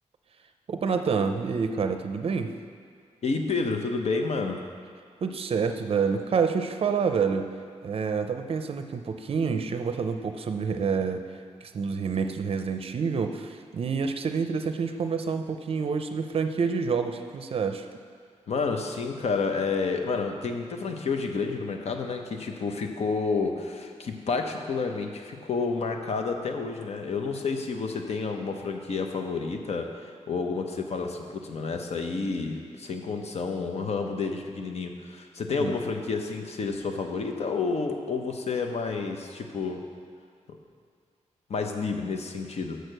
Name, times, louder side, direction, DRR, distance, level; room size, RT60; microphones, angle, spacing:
voice 1, 0.7-2.5 5.2-7.5 7.8-11.2 11.6-17.9 35.5-35.7, right 5 dB, 50° right, 7 dB, 0.5 m, -28 dB
voice 2, 3.2-4.6 18.5-39.8 40.5-40.6 41.5-42.8, left 4 dB, 60° left, 4 dB, 0.8 m, -30 dB
6.5 x 6.3 x 6.6 m, 2.2 s
wide cardioid pair, 135°, 13 cm